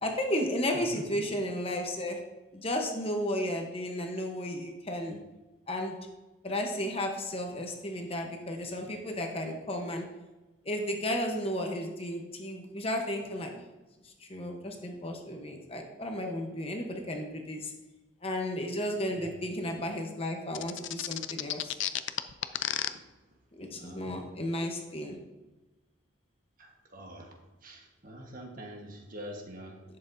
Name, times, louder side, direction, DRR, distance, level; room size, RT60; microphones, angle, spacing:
voice 1, 0.0-2.2 2.5-5.2 5.7-6.0 6.4-10.1 10.6-13.6 14.0-17.7 18.2-21.8 23.6-25.2, left 1 dB, 30° left, 3 dB, 1.0 m, -33 dB
sound 1, 20.5-22.9, left 12 dB, 70° left, 0.4 m, -31 dB
voice 2, 23.7-24.1 26.6-27.3 27.6-29.8, equal, 45° right, 1 dB, 1.4 m, -45 dB
11.0 x 7.7 x 2.7 m, 1.1 s
head